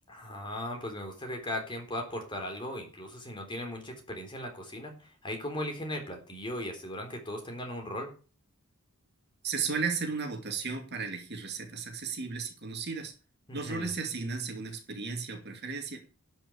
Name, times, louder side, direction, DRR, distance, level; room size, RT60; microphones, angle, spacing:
voice 1, 0.1-8.1 13.5-13.9, left 1 dB, 20° left, 2 dB, 3.7 m, -38 dB
voice 2, 9.4-13.1 13.5-16.0, right 5 dB, 50° right, 4 dB, 2.5 m, -34 dB
12.0 x 6.3 x 8.1 m, 0.37 s
head